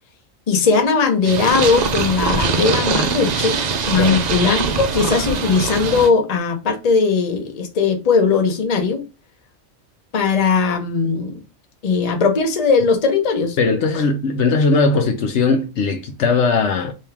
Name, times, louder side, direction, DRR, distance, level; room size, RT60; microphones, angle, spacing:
voice 1, 0.5-9.0 10.1-11.4 11.8-13.6 13.9-14.0, left 5 dB, 35° left, 0.7 m, -18 dB
Purr, 1.2-6.1, right 5 dB, 70° right, 0.4 m, -22 dB
voice 2, 13.6-16.9, left 4 dB, 65° left, 0.9 m, -18 dB
3.5 x 2.8 x 2.9 m
omnidirectional pair, 1.4 m